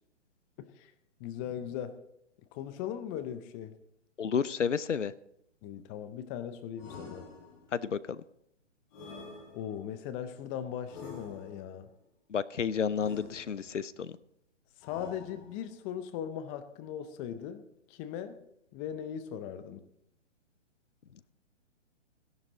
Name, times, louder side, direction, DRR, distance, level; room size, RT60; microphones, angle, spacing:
voice 1, 0.6-0.9 1.2-2.0 2.5-3.8 5.6-7.3 9.5-11.9 14.8-17.6 17.9-18.4 18.7-19.8, left 9 dB, 15° left, 10 dB, 0.5 m, -39 dB
voice 2, 4.2-5.1 7.7-8.2 12.3-14.2, left 7 dB, 85° left, 18 dB, 0.7 m, -31 dB
sound 1, 6.8-7.8 8.9-10.0 10.9-11.8 12.9-13.9 14.8-15.8, left 3 dB, 35° left, 6.6 m, -48 dB
16.0 x 11.0 x 3.9 m, 0.75 s
hypercardioid pair, 135°, 36 cm